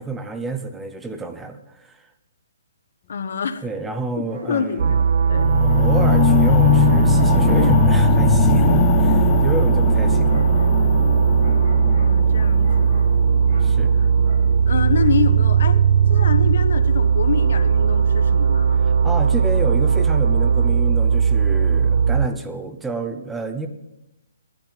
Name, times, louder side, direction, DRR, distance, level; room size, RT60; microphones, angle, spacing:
voice 1, 0.0-2.0 3.6-5.0 5.6-10.4 13.6-13.9 18.7-23.7, right 3 dB, 5° right, 7 dB, 0.8 m, -29 dB
voice 2, 3.1-3.6 4.2-5.0 5.3-5.5 12.0-13.1 14.0-14.1 14.7-15.8 16.1-18.8, left 6 dB, 55° left, 10 dB, 1.3 m, -26 dB
sound 1, 4.3-16.9, equal, 30° right, 6.6 m, -46 dB
sound 2, 4.8-22.3, right 6 dB, 55° right, 0.5 m, -17 dB
sound 3, 5.3-15.4 16.1-16.2, left 14 dB, 20° left, 0.3 m, -22 dB
14.0 x 12.0 x 5.1 m, 0.91 s
hypercardioid pair, 170°, 0 cm